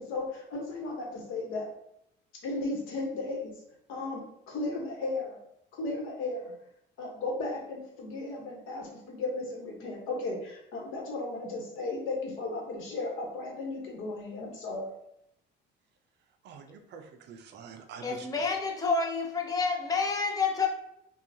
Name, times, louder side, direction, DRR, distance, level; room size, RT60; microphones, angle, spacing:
voice 1, 0.0-1.7 2.4-3.5 3.9-5.4 5.7-6.5 7.0-14.9, left 2 dB, 85° left, 0 dB, 1.1 m, -35 dB
voice 2, 16.4-18.4, right 6 dB, 60° right, 7 dB, 0.5 m, -47 dB
voice 3, 18.0-20.7, left 4 dB, 20° left, 1 dB, 0.6 m, -28 dB
5.5 x 2.3 x 2.7 m, 0.77 s
cardioid pair, 155°, 20 cm